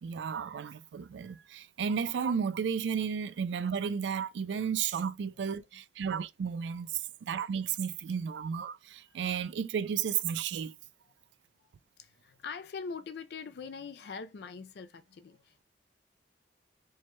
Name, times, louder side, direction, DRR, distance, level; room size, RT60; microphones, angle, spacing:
voice 1, 0.0-10.8, right 7 dB, 85° right, 0.3 m, -33 dB
voice 2, 12.0-15.6, left 5 dB, 65° left, 0.4 m, -43 dB
4.5 x 2.2 x 3.0 m
head